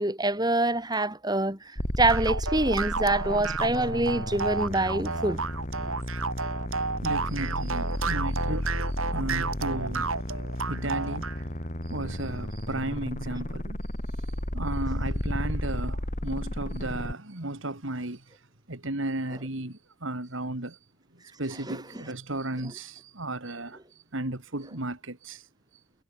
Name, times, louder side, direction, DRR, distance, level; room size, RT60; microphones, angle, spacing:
voice 1, 0.0-5.4 21.7-22.0, right 2 dB, 20° right, 3.9 m, -26 dB
sound 1, 1.8-17.1, equal, 35° left, 3.4 m, -33 dB
sound 2, 2.1-11.4, right 4 dB, 80° right, 5.3 m, -32 dB
voice 2, 7.0-10.1 10.7-11.3 11.8-13.8 14.1-14.3 14.5-18.4 18.7-20.8 21.4-25.5, right 2 dB, 65° right, 2.6 m, -34 dB
head